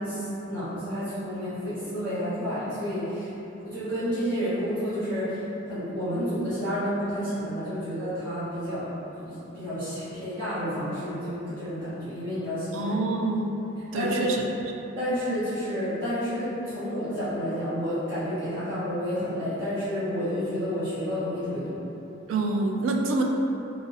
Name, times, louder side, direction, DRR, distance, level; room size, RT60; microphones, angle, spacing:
voice 1, 0.0-3.3 3.6-5.4 5.7-8.9 9.2-13.0 13.9-14.3 15.0-21.8, equal, 70° right, -16 dB, 1.1 m, -30 dB
voice 2, 12.7-13.6 13.9-14.4 22.3-23.2, right 2 dB, 90° right, 2 dB, 0.3 m, -26 dB
2.9 x 2.7 x 2.6 m, 3.0 s
head